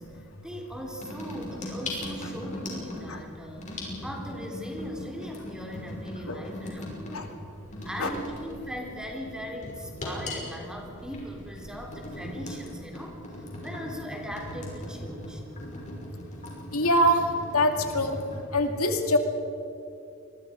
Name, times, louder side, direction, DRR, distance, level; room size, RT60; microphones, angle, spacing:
voice 1, 0.0-3.7 4.0-7.3 7.8-13.2 13.6-15.4, equal, 5° right, 0 dB, 3.5 m, -39 dB
sound 1, 0.7-18.4, left 1 dB, 35° left, 5.9 m, -40 dB
voice 2, 16.7-17.2 17.5-18.2 18.5-19.2, equal, 85° left, 4 dB, 2.3 m, -23 dB
27.5 x 22.0 x 5.2 m, 2.7 s
head